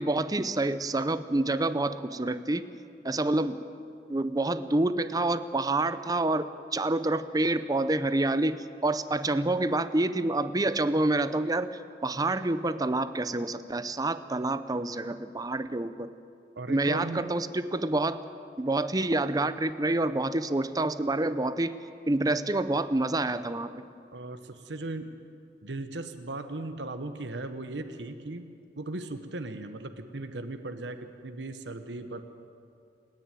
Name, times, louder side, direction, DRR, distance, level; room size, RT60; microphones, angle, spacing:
voice 1, 0.0-2.6 3.0-3.6 4.1-16.1 16.7-18.2 18.6-21.8 22.1-23.7, right 2 dB, 20° right, 12 dB, 0.7 m, -27 dB
voice 2, 16.6-17.3 24.1-25.1 25.6-28.5 28.8-31.0 31.2-32.2, right 2 dB, 90° right, 8 dB, 1.1 m, -37 dB
29.0 x 10.5 x 9.2 m, 2.5 s
head